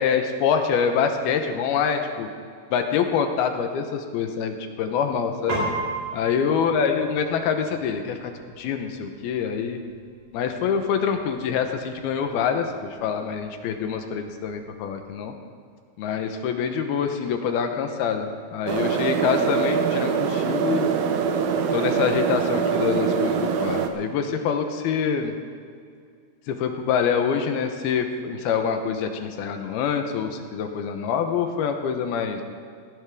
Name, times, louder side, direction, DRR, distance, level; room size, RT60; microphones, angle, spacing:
voice 1, 0.0-2.3 2.7-5.6 6.1-8.3 8.6-9.8 10.3-15.3 16.0-20.9 21.7-25.3 26.5-32.4, left 7 dB, 75° left, 6 dB, 2.8 m, -25 dB
Piano, 5.5-15.1, right 2 dB, 45° right, 5.4 m, -37 dB
sound 1, 18.7-23.9, right 6 dB, 70° right, 2.5 m, -23 dB
17.0 x 17.0 x 3.6 m, 2.3 s
omnidirectional pair, 4.7 m